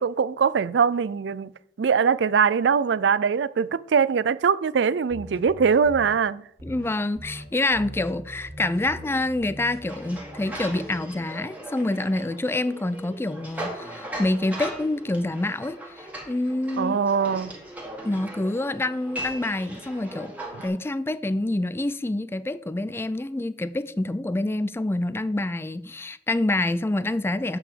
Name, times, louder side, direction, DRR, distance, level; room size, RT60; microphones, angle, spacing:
voice 1, 0.0-1.5 1.8-6.4 16.8-17.5, right 6 dB, 75° right, 0.4 m, -22 dB
sound 1, 5.1-6.1 6.6-6.9 7.1-7.4 7.7-11.0, equal, 60° right, 1.9 m, -41 dB
voice 2, 6.6-17.0 18.0-27.6, left 2 dB, 15° left, 0.3 m, -27 dB
sound 2, 9.9-20.7, right 1 dB, 10° right, 1.9 m, -38 dB
8.3 x 5.8 x 6.8 m
head